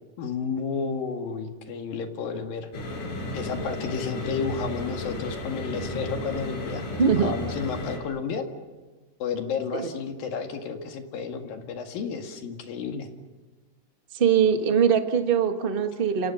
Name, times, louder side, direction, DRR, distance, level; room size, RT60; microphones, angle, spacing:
voice 1, 0.2-2.7 3.3-8.5 9.2-13.1, left 5 dB, 85° left, 5 dB, 3.8 m, -32 dB
sound 1, 2.7-8.0, left 1 dB, 65° left, 6.0 m, -33 dB
voice 2, 7.0-7.3 9.7-9.9 14.1-16.3, right 7 dB, 45° right, 6 dB, 0.6 m, -22 dB
29.0 x 28.0 x 5.9 m, 1.3 s
omnidirectional pair, 4.0 m